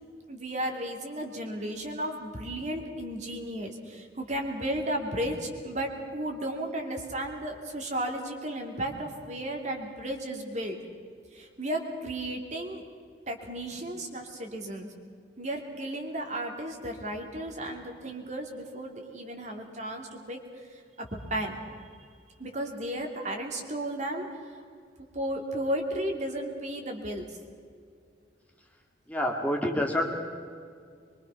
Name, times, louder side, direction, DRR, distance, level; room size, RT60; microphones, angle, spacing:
voice 1, 0.3-10.8 11.3-12.8 13.3-14.9 15.4-20.4 21.0-21.6 22.4-24.3 25.1-27.3, right 1 dB, 40° right, 2 dB, 2.8 m, -34 dB
voice 2, 29.1-30.1, left 1 dB, 10° left, 1 dB, 2.1 m, -27 dB
24.0 x 23.5 x 5.8 m, 2.2 s
head